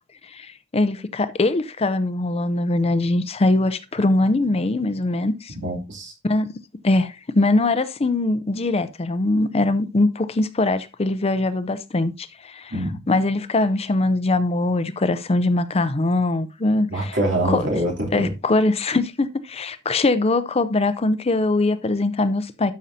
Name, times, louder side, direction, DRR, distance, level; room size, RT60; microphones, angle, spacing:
voice 1, 0.2-5.5 6.2-6.5 6.8-12.7 13.1-17.2 17.5-17.7 18.1-22.7, left 2 dB, 30° left, 0.6 m, -22 dB
voice 2, 5.6-6.1 12.7-13.0 16.9-18.3, right 1 dB, 60° right, 3.0 m, -24 dB
12.5 x 5.5 x 2.7 m
head